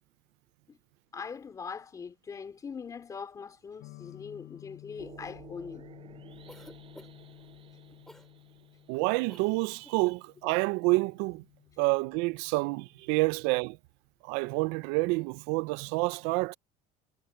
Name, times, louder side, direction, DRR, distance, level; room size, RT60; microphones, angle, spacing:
voice 1, 1.1-5.9, left 6 dB, 20° left, 3.0 m, -42 dB
sound 1, 3.8-13.6, left 21 dB, 65° left, 4.9 m, -54 dB
sound 2, 5.0-10.2, right 10 dB, 30° right, 7.0 m, -54 dB
Cough, 6.5-7.3 8.1-8.3 9.3-9.5 9.8-10.0, left 1 dB, ahead, 3.7 m, -51 dB
voice 2, 8.9-11.4 11.8-13.8 14.2-16.5, right 25 dB, 80° right, 0.4 m, -28 dB
cardioid pair, 180°, 18 cm